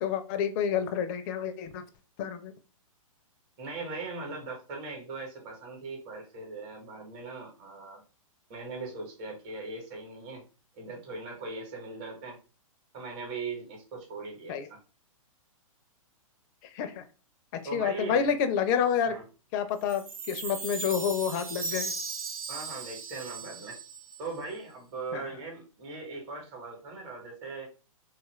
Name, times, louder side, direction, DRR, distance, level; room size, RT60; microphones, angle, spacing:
voice 1, 0.0-1.8 2.2-2.5 14.5-14.7 16.7-17.0 17.7-19.2 19.5-20.0 20.3-21.9 25.1-25.2, left 7 dB, 35° left, 9 dB, 0.4 m, -28 dB
voice 2, 3.6-8.0 8.5-10.5 10.7-12.4 12.9-14.8 17.6-18.3 19.1-19.2 22.5-23.8 24.2-27.7, right 3 dB, 35° right, 0 dB, 1.0 m, -39 dB
Chime, 19.9-24.4, right 4 dB, 80° right, 0.9 m, -37 dB
2.7 x 2.4 x 3.0 m, 0.33 s
hypercardioid pair, 125°, 18 cm